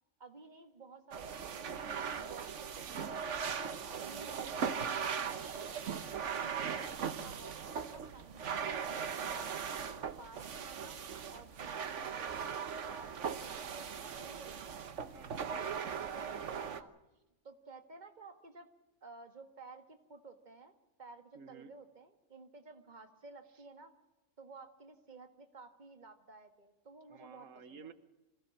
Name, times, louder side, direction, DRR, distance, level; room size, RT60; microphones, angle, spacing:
voice 1, 0.2-3.5 3.9-5.7 6.3-9.5 10.2-14.6 16.1-16.9 17.4-18.7 19.0-20.7 21.0-23.9 24.4-27.9, right 4 dB, 35° right, 7 dB, 1.9 m, -54 dB
sound 1, 1.1-16.8, right 7 dB, 70° right, 1.4 m, -39 dB
voice 2, 15.1-15.7 21.3-21.7 23.5-23.6 27.1-27.9, right 6 dB, 85° right, 12 dB, 1.5 m, -54 dB
26.5 x 16.0 x 7.3 m, 1.0 s
omnidirectional pair, 1.3 m